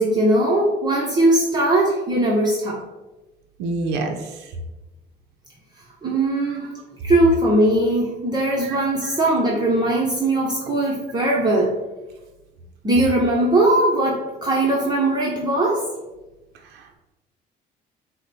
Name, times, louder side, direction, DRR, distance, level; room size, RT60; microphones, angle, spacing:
voice 1, 0.0-2.8 6.0-6.7 7.0-11.7 12.8-15.8, right 1 dB, 25° right, -3 dB, 0.8 m, -20 dB
voice 2, 3.6-4.5 6.5-6.7 8.6-9.1 16.7-17.0, right 3 dB, 85° right, 3 dB, 0.5 m, -29 dB
4.9 x 2.1 x 4.0 m, 1.1 s
cardioid pair, 110°, 17 cm